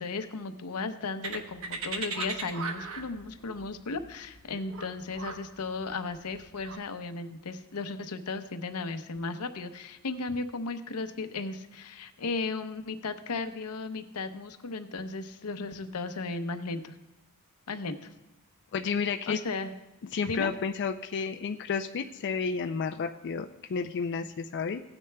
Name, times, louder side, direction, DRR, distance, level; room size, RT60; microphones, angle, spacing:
voice 1, 0.0-17.0 17.7-18.1 19.3-19.7 20.3-20.5, left 3 dB, 90° left, 9 dB, 0.7 m, -35 dB
sound 1, 1.2-6.8, right 4 dB, 65° right, 1.1 m, -38 dB
voice 2, 18.7-19.4 20.1-24.8, left 5 dB, 55° left, 5 dB, 0.4 m, -31 dB
16.5 x 9.8 x 2.2 m, 1.0 s
head